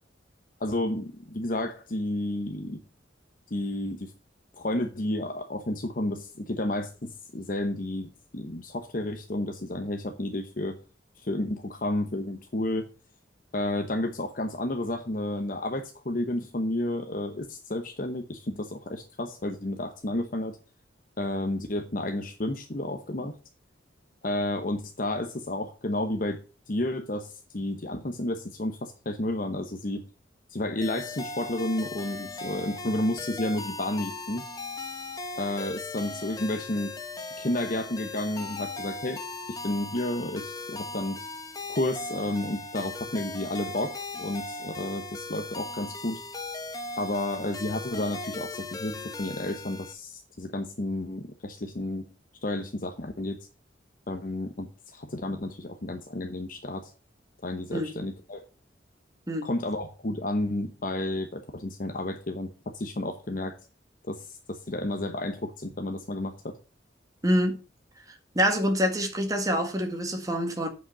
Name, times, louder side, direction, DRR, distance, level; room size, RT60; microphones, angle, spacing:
voice 1, 0.6-2.8 3.5-4.1 4.5-10.8 11.2-12.9 13.5-20.6 21.2-23.4 24.2-26.4 26.7-30.0 30.5-34.4 35.4-36.9 37.4-39.2 39.5-41.2 41.7-46.2 47.0-52.1 52.4-53.5 54.1-56.9 57.4-58.4 59.4-63.6 64.1-66.6, left 1 dB, 45° left, 1.0 m, -31 dB
sound 1, 30.8-49.9, left 2 dB, 20° left, 1.1 m, -38 dB
voice 2, 67.2-67.6 68.4-70.7, equal, 20° right, 1.8 m, -26 dB
8.8 x 5.3 x 6.7 m
head